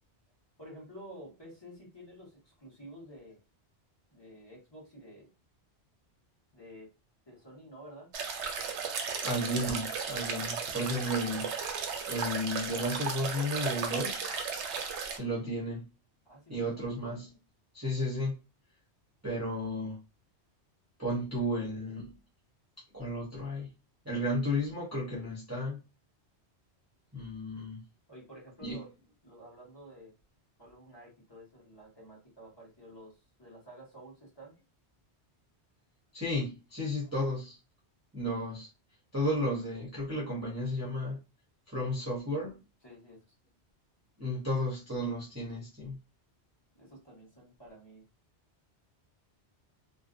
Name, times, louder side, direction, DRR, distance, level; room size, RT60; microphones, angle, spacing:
voice 1, 0.6-3.4 4.1-5.3 6.5-6.9 7.3-8.1 16.2-16.9 28.1-28.9 29.2-30.1 30.6-34.6 42.8-43.3 46.7-48.0, equal, 25° left, 1.0 m, -51 dB
sound 1, 8.1-15.2, right 6 dB, 85° right, 0.9 m, -35 dB
voice 2, 9.2-14.4 15.1-15.9 16.5-17.4 17.7-18.3 19.2-20.0 21.0-22.2 22.9-23.7 24.0-25.8 27.1-27.8 28.6-28.8 36.1-37.6 38.1-38.7 39.1-41.2 41.7-42.6 44.2-46.0, left 1 dB, 15° right, 0.6 m, -33 dB
2.5 x 2.1 x 2.5 m
omnidirectional pair, 1.1 m